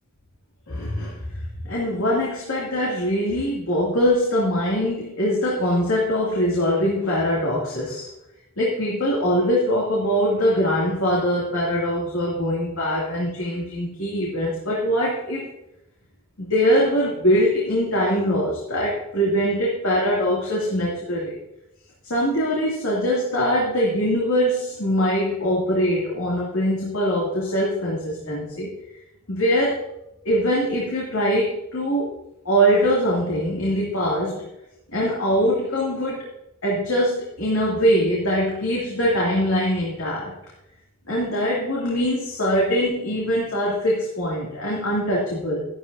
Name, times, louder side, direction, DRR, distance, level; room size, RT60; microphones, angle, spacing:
voice 1, 0.7-1.2 1.6-8.1 8.6-15.5 16.4-21.4 22.1-28.7 29.3-29.8 30.2-32.1 32.4-34.5 34.9-36.3 36.6-40.4 41.1-45.7, equal, 85° left, -5 dB, 2.5 m, -22 dB
13.0 x 11.5 x 2.7 m, 0.85 s
head